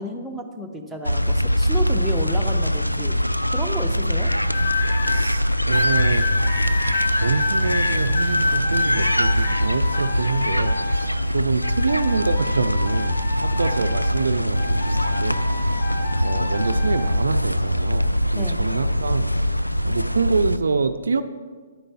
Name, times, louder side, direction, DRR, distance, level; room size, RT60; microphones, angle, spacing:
voice 1, 0.0-3.2 3.5-4.3 18.3-18.6, equal, ahead, 0 dB, 0.8 m, -31 dB
sound 1, 1.0-20.6, equal, 90° left, 0.4 m, -23 dB
sound 2, 4.5-5.2 5.7-11.2 11.6-14.2 14.5-17.1 17.8-18.1, left 3 dB, 50° left, 1.2 m, -28 dB
voice 2, 5.0-6.3 7.1-15.4 16.2-19.5 19.8-21.2, right 4 dB, 65° right, 10 dB, 0.4 m, -26 dB
10.0 x 8.7 x 4.2 m, 1.5 s
figure-of-eight pair, 125°, 0 cm